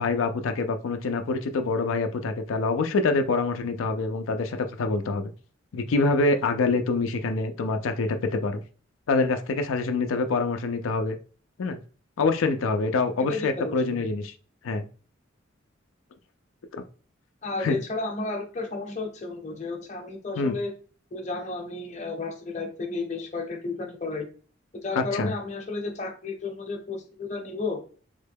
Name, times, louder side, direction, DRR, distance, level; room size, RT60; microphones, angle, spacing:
voice 1, 0.0-5.3 5.7-8.6 9.1-11.2 11.6-11.8 12.2-14.3 14.6-14.8 16.7-16.8 17.6-17.8 20.4-20.6 25.0-25.3, left 3 dB, 85° left, 6 dB, 0.4 m, -25 dB
voice 2, 13.3-14.1 17.4-20.7 21.1-24.3 24.8-27.8, left 3 dB, 35° left, 3 dB, 0.7 m, -32 dB
3.5 x 2.1 x 3.4 m, 0.39 s
head